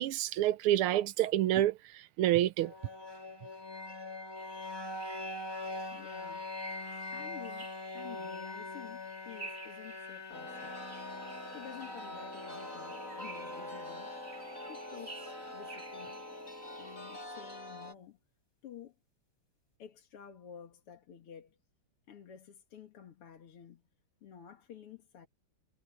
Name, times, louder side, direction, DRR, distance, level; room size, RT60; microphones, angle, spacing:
voice 1, 0.0-2.7, right 13 dB, 80° right, 1.6 m, -28 dB
sound 1, 2.6-16.5, left 2 dB, 10° left, 1.8 m, -44 dB
sound 2, 4.4-17.3, right 3 dB, 30° right, 3.0 m, -53 dB
voice 2, 5.9-6.5 7.1-7.7 7.9-10.8 11.5-14.2 14.7-16.2 16.8-18.2 18.6-19.0 19.8-21.6 22.1-23.8 24.2-25.3, left 8 dB, 85° left, 2.8 m, -51 dB
Chime, 10.3-17.9, left 1 dB, 35° left, 7.2 m, -45 dB
omnidirectional pair, 2.4 m